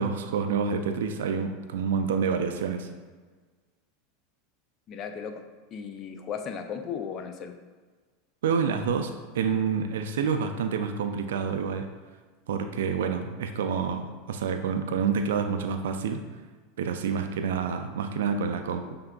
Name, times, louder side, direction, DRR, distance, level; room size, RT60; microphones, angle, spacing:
voice 1, 0.0-2.9 8.4-11.9 12.5-16.2 16.8-18.9, right 6 dB, 75° right, 7 dB, 0.3 m, -28 dB
voice 2, 4.9-5.4 5.7-7.5, left 7 dB, 40° left, 6 dB, 0.5 m, -36 dB
5.7 x 3.4 x 2.3 m, 1.4 s
hypercardioid pair, 90°, 0 cm